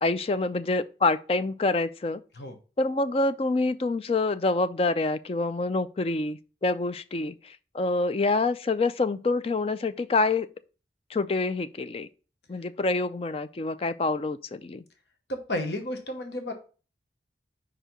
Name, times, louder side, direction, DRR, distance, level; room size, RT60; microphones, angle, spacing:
voice 1, 0.0-2.2 2.8-10.5 11.1-12.1 12.5-14.8, left 3 dB, 35° left, 0.4 m, -26 dB
voice 2, 15.3-16.5, left 1 dB, 70° left, 1.0 m, -32 dB
5.0 x 4.6 x 5.1 m
head